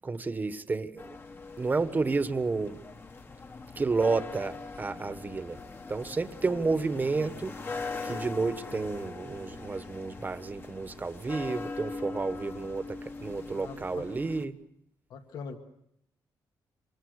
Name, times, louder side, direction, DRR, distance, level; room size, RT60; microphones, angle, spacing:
voice 1, 0.0-1.2 1.6-2.8 3.8-5.6 5.9-14.6, right 3 dB, 25° right, 11 dB, 1.3 m, -31 dB
sound 1, 1.0-14.5, left 3 dB, 30° left, 1.3 m, -41 dB
voice 2, 13.5-14.0 15.1-15.6, left 5 dB, 75° left, 5 dB, 1.9 m, -42 dB
27.0 x 26.5 x 6.5 m, 0.74 s
cardioid pair, 135°, 7 cm